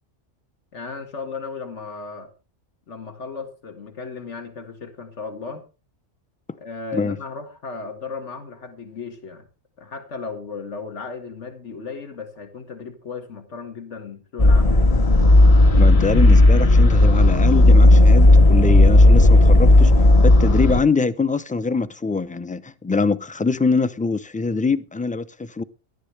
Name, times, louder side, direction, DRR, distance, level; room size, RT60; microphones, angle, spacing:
voice 1, 0.7-2.3 2.9-5.6 6.6-9.5 9.8-15.0, left 4 dB, 75° left, 2.2 m, -35 dB
sound 1, 14.4-20.8, left 2 dB, 35° left, 0.8 m, -12 dB
voice 2, 15.8-19.9 20.2-25.6, left 4 dB, 10° left, 0.4 m, -23 dB
17.0 x 11.5 x 3.3 m
omnidirectional pair, 1.2 m